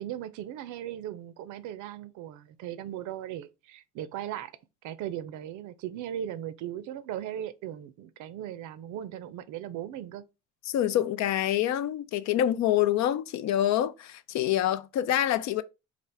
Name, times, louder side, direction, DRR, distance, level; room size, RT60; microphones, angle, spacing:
voice 1, 0.0-4.5 4.8-10.2, right 11 dB, 70° right, 0.5 m, -38 dB
voice 2, 10.7-15.6, left 11 dB, 60° left, 0.5 m, -26 dB
4.2 x 2.4 x 3.4 m
supercardioid pair, 70°, 31 cm